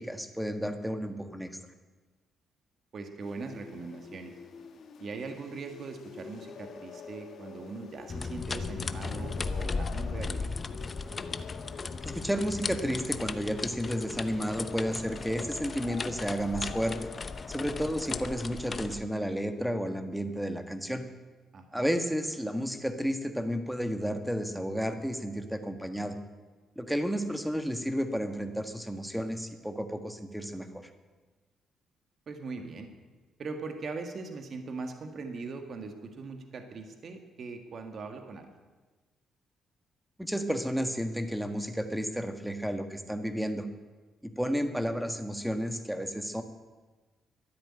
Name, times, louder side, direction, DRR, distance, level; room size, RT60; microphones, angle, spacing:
voice 1, 0.0-1.5 12.0-17.1 17.5-21.0 21.7-26.1 26.7-30.7 40.2-43.7 44.2-46.4, equal, ahead, 7 dB, 1.6 m, -32 dB
voice 2, 2.9-4.3 5.0-10.5 21.5-21.9 32.3-32.9 33.4-38.5, right 4 dB, 50° right, 5 dB, 1.9 m, -40 dB
sound 1, 3.2-18.3, left 6 dB, 65° left, 1.5 m, -47 dB
sound 2, 8.1-19.0, left 4 dB, 35° left, 0.8 m, -36 dB
13.0 x 10.5 x 8.9 m, 1.3 s
cardioid pair, 90°, 0 cm